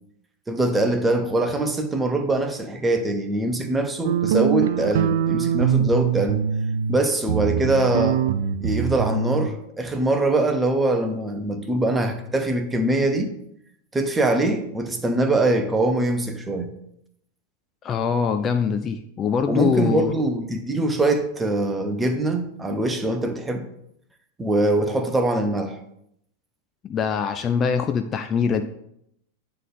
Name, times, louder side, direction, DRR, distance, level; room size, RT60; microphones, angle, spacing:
voice 1, 0.5-6.4 6.9-8.2 8.6-13.3 13.9-16.7 19.5-23.7 24.4-25.8, right 2 dB, 10° right, 0.7 m, -23 dB
sound 1, 4.0-7.0 7.3-9.5, right 8 dB, 55° right, 0.3 m, -23 dB
voice 2, 17.8-20.1 26.9-28.6, left 6 dB, 25° left, 0.4 m, -23 dB
9.1 x 3.3 x 3.9 m
figure-of-eight pair, 90°, 0 cm